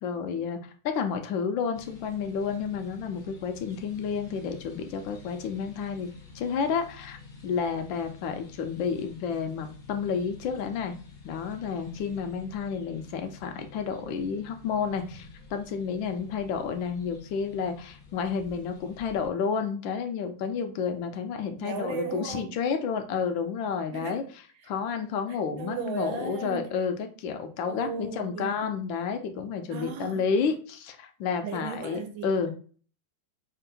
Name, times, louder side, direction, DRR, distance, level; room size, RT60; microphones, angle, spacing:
voice 1, 0.0-11.0 11.2-24.2 24.6-32.5, left 6 dB, 80° left, 1.3 m, -31 dB
sound 1, 1.7-19.3, left 4 dB, 45° left, 0.6 m, -49 dB
voice 2, 21.6-22.6 23.9-24.2 24.6-24.7 25.3-26.7 27.7-28.7 29.7-30.3 31.4-32.5, right 6 dB, 80° right, 1.4 m, -36 dB
3.7 x 2.5 x 3.9 m
omnidirectional pair, 2.2 m